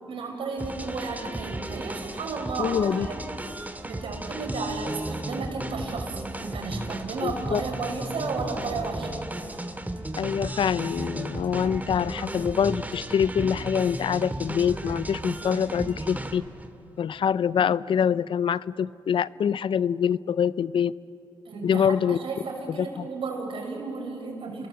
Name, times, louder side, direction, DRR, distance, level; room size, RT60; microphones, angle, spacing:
voice 1, 0.1-3.2 3.8-9.2 21.4-24.7, right 4 dB, 80° right, 1 dB, 6.1 m, -33 dB
sound 1, 0.6-16.7, right 1 dB, 20° right, 2.2 m, -35 dB
voice 2, 2.6-3.1 7.2-7.6 10.2-16.4 17.0-20.9 21.6-22.2 22.7-23.1, left 8 dB, 70° left, 19 dB, 0.5 m, -25 dB
30.0 x 22.5 x 7.7 m, 2.9 s
cardioid pair, 50°, 9 cm